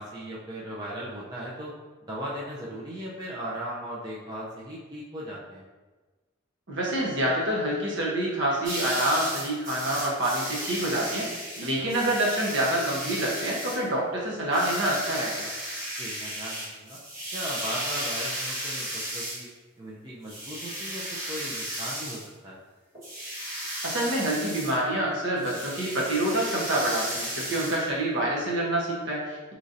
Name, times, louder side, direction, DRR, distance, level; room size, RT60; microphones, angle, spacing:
voice 1, 0.0-1.7 2.0-5.6 11.8-11.9 16.0-17.0 17.3-19.5 19.8-22.6, equal, 20° right, -6 dB, 0.4 m, -37 dB
voice 2, 6.7-11.3 11.6-15.5 23.8-29.5, right 1 dB, 60° right, -4 dB, 0.9 m, -27 dB
sound 1, 8.6-13.8 14.5-19.4 20.2-22.2 22.9-24.8 25.4-27.8, right 1 dB, 40° right, 1.3 m, -35 dB
3.8 x 3.0 x 2.5 m, 1.3 s
head